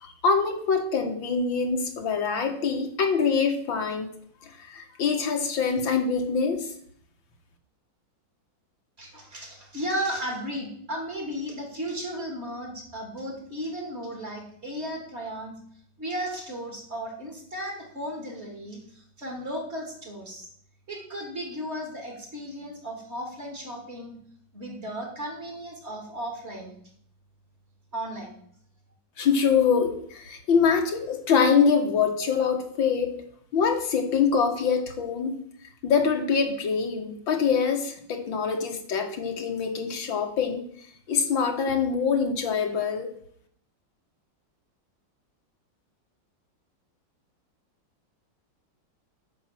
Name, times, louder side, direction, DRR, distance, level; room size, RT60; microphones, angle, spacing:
voice 1, 0.0-4.1 4.6-6.7 29.2-33.2 33.5-35.4 35.8-40.6 41.1-43.1, left 6 dB, 85° left, 4 dB, 2.2 m, -24 dB
voice 2, 9.0-15.5 16.0-20.5 20.9-24.2 24.5-26.7 27.9-28.3, equal, 35° right, 1 dB, 3.0 m, -35 dB
9.3 x 6.2 x 7.5 m, 0.64 s
omnidirectional pair, 2.1 m